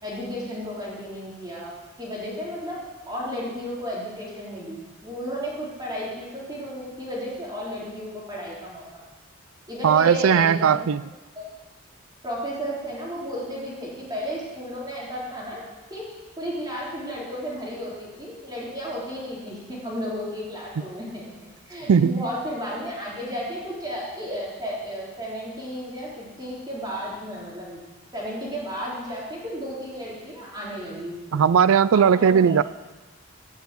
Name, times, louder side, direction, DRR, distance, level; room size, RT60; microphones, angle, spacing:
voice 1, 0.0-2.8 3.1-9.0 9.7-10.8 11.4-11.5 12.2-15.6 15.9-16.1 16.4-27.8 28.1-31.6 31.9-32.6, equal, 20° right, -6 dB, 3.7 m, -33 dB
voice 2, 9.8-11.0 21.9-22.2 31.3-32.6, right 7 dB, 75° right, 17 dB, 0.4 m, -18 dB
16.0 x 6.7 x 8.3 m, 1.2 s
head